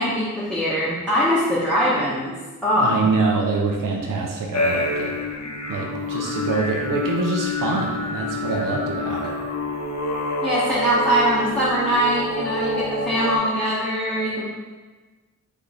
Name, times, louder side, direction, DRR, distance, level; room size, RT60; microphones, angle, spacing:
voice 1, 0.0-2.4 2.6-2.9 10.4-14.5, equal, ahead, -8 dB, 0.8 m, -22 dB
voice 2, 2.8-5.1 5.7-9.4, right 3 dB, 70° right, -1 dB, 0.7 m, -25 dB
sound 1, 4.5-13.4, left 2 dB, 50° left, 0.6 m, -27 dB
3.6 x 3.4 x 4.0 m, 1.3 s
wide cardioid pair, 105°, 33 cm